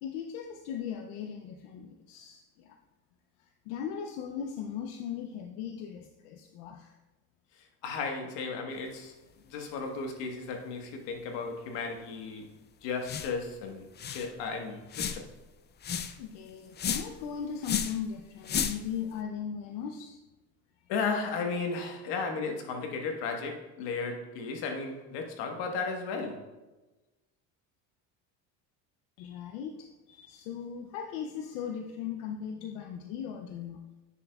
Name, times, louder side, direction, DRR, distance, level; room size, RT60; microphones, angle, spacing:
voice 1, 0.0-2.8 3.4-7.0 16.2-20.2 29.2-33.8, left 8 dB, 90° left, 5 dB, 0.7 m, -38 dB
voice 2, 7.8-9.1 9.5-12.5 12.8-15.3 20.9-26.5, left 4 dB, 70° left, 3 dB, 1.4 m, -34 dB
sound 1, 13.0-13.4 13.7-13.8 14.0-14.3 14.9-15.3 15.8-16.2 16.8-17.2 17.6-18.0 18.4-18.9, left 7 dB, 25° left, 0.4 m, -33 dB
9.3 x 7.0 x 2.3 m, 1.1 s
supercardioid pair, 110°, 43 cm